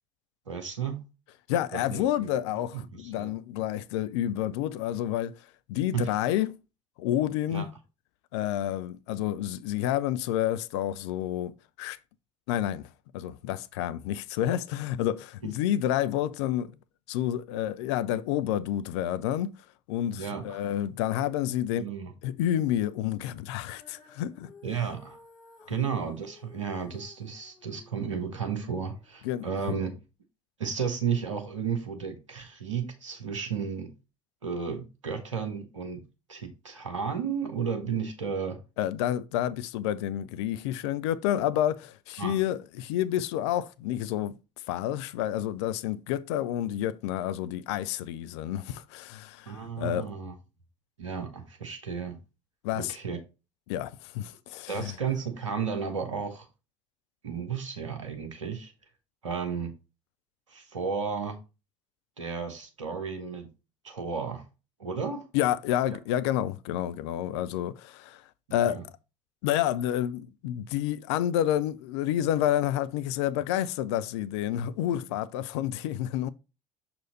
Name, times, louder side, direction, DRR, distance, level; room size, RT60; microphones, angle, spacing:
voice 1, 0.5-1.0 1.7-2.3 2.7-3.3 5.9-6.1 7.5-7.7 20.1-20.6 21.8-22.1 24.6-25.2 25.7-30.0 30.6-33.9 34.4-36.0 36.3-38.6 42.2-42.3 49.5-50.3 51.0-52.2 52.7-53.2 54.7-56.5 57.2-58.7 59.2-59.7 60.5-61.4 62.2-63.5 63.8-64.4 64.8-65.2 67.3-67.4 68.7-68.8, right 6 dB, 80° right, 1.1 m, -33 dB
voice 2, 1.5-5.4 5.7-6.6 7.0-7.7 8.3-12.0 12.5-12.9 13.1-16.7 17.1-19.5 19.9-21.9 22.2-24.5 29.2-29.5 38.8-44.3 44.7-50.1 52.6-53.0 53.7-54.9 65.3-68.2 68.5-68.8 69.4-76.3, left 12 dB, 60° left, 0.4 m, -29 dB
Female singing, 23.7-29.9, left 3 dB, 25° left, 3.7 m, -56 dB
6.3 x 4.3 x 3.9 m
figure-of-eight pair, 55°, 16 cm